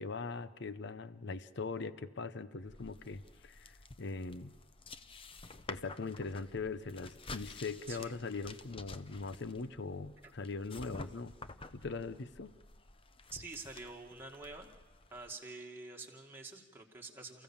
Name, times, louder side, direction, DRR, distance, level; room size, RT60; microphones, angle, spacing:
voice 1, 0.0-4.5 5.7-11.4 11.7-12.5, left 4 dB, 65° left, 14 dB, 0.8 m, -41 dB
sound 1, 2.6-15.3, left 3 dB, 30° left, 0.7 m, -51 dB
voice 2, 13.3-14.7 15.1-17.4, right 3 dB, 10° right, -1 dB, 2.1 m, -47 dB
29.5 x 15.0 x 7.2 m, 1.2 s
head